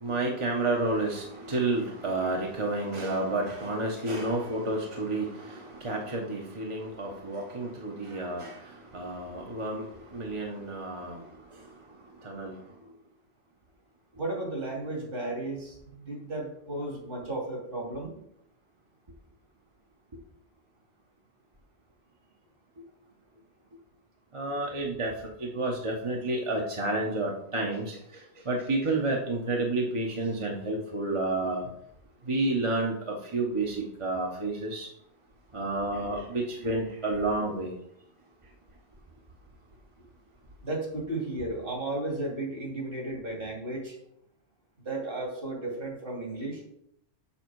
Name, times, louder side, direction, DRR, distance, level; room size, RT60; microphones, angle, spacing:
voice 1, 0.0-8.6 8.9-9.8 10.1-11.2 12.2-12.5 24.3-25.1 25.4-28.0 28.5-31.6 32.3-34.9 35.5-37.7, right 2 dB, 30° right, -1 dB, 1.1 m, -30 dB
voice 2, 14.2-18.1 40.6-44.0 44.8-46.6, right 2 dB, 55° right, -1 dB, 2.7 m, -34 dB
7.1 x 6.4 x 4.7 m, 0.72 s
omnidirectional pair, 1.1 m